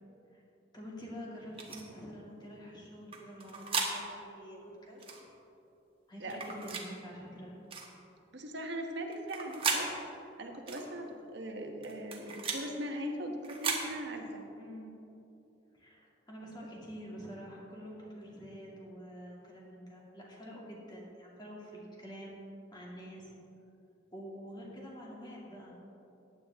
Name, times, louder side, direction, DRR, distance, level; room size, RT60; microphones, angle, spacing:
voice 1, 0.7-5.0 6.1-7.5 14.6-14.9 15.7-22.4 22.7-23.3 24.1-25.8, equal, 25° left, -4 dB, 2.5 m, -47 dB
sound 1, 1.6-1.8 3.1-3.9 5.0-5.2 6.3-6.9 7.7-7.9 9.1-9.8 10.7-10.9 11.8-12.6 13.4-13.8, right 4 dB, 30° right, 1.4 m, -35 dB
voice 2, 8.3-9.9 10.4-14.4, right 1 dB, 65° right, 2 dB, 1.2 m, -40 dB
15.0 x 9.8 x 3.6 m, 2.9 s
head